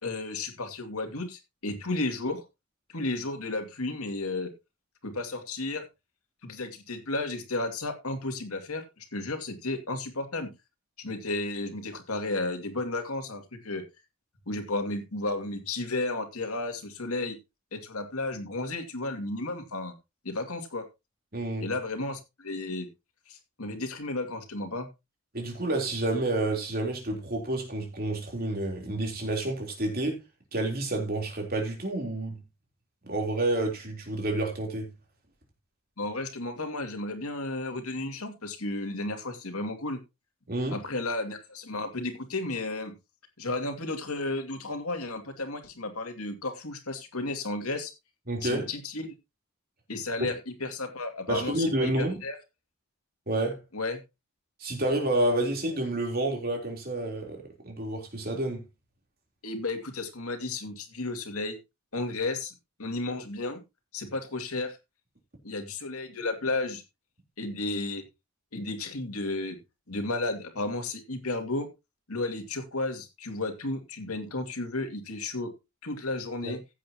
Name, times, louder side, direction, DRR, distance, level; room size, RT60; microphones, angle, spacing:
voice 1, 0.0-2.4 2.9-4.5 5.0-5.8 6.4-10.5 11.0-13.8 14.5-17.4 17.7-19.9 20.2-20.8 21.6-22.9 23.3-24.9 36.0-40.0 40.7-42.9 43.4-47.9 48.4-49.1 49.9-52.4 53.7-54.0 59.4-61.6 61.9-62.5 62.8-63.6 63.9-64.8 65.4-66.8 67.4-68.0 68.5-69.6 69.9-71.7 72.1-75.5 75.8-76.6, left 2 dB, 90° left, 2.4 m, -33 dB
voice 2, 21.3-21.7 25.3-30.2 30.5-32.4 33.0-34.9 40.5-40.8 48.3-48.7 50.2-50.3 51.3-52.2 53.3-53.6 54.6-58.6 76.4-76.5, right 1 dB, 45° right, 3.6 m, -29 dB
15.5 x 7.8 x 2.9 m
head